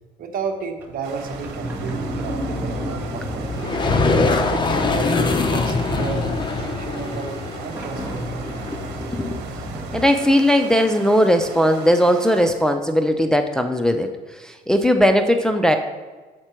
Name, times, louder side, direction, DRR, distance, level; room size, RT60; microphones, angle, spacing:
voice 1, 0.2-3.8 4.4-6.3 6.5-8.5, right 4 dB, 55° right, 4 dB, 1.2 m, -32 dB
Sliding door, 0.8-10.0, equal, 10° right, 2.4 m, -32 dB
sound 1, 1.0-12.5, right 5 dB, 85° right, 1.1 m, -38 dB
sound 2, 3.6-9.2, left 3 dB, 25° left, 0.8 m, -23 dB
voice 2, 8.5-9.4 9.9-14.1 14.4-15.8, equal, 5° left, 6 dB, 0.4 m, -18 dB
7.6 x 5.9 x 4.4 m, 1.3 s
cardioid pair, 110°, 17 cm